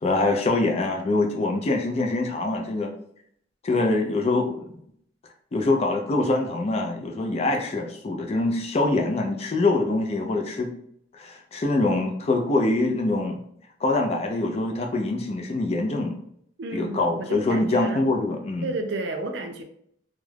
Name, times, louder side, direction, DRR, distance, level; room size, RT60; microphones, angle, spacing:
voice 1, 0.0-2.9 3.6-4.8 5.5-10.7 11.1-13.4 13.8-16.2 16.7-18.7, left 2 dB, 35° left, 0.4 m, -24 dB
voice 2, 16.6-18.1 18.6-19.6, right 2 dB, 70° right, 0.4 m, -32 dB
2.3 x 2.0 x 3.2 m
head